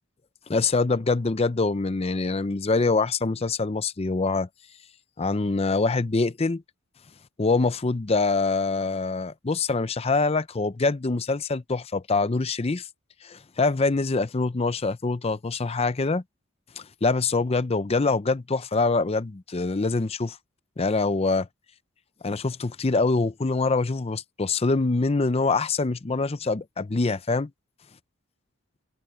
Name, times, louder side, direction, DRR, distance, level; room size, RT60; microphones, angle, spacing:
voice 1, 0.5-4.5 5.2-6.6 7.4-12.9 13.2-16.2 16.8-20.4 20.8-21.5 22.2-27.5, left 3 dB, 30° left, 0.5 m, -24 dB
head